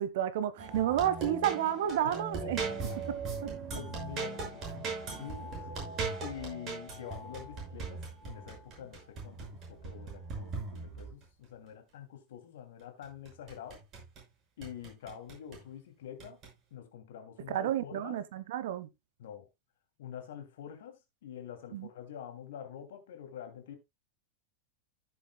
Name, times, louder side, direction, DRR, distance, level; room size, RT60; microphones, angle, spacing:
voice 1, 0.0-2.6 3.1-3.2 17.5-18.9 21.7-21.9, right 11 dB, 55° right, 1.0 m, -31 dB
sound 1, 0.6-11.2 13.0-14.2 14.6-15.6 16.2-16.5, right 4 dB, 30° right, 6.0 m, -39 dB
voice 2, 2.0-3.2 3.7-4.9 5.2-5.6 6.2-13.8 14.6-16.4 16.7-18.2 19.2-19.5 20.0-23.8, left 9 dB, 55° left, 2.6 m, -46 dB
15.0 x 7.0 x 2.3 m
figure-of-eight pair, 90°, 0 cm